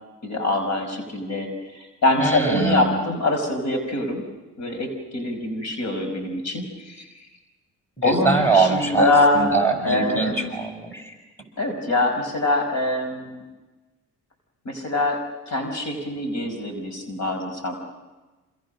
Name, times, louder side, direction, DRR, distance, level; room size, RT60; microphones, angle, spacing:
voice 1, 0.2-4.3 4.6-7.3 8.0-10.6 11.6-13.4 14.7-15.2 15.5-17.7, left 2 dB, 65° left, 6 dB, 5.3 m, -24 dB
voice 2, 2.2-2.9 8.0-9.1 9.3-11.0, right 4 dB, 5° left, 2 dB, 7.0 m, -22 dB
28.5 x 27.0 x 6.5 m, 1.2 s
cardioid pair, 90°, 30 cm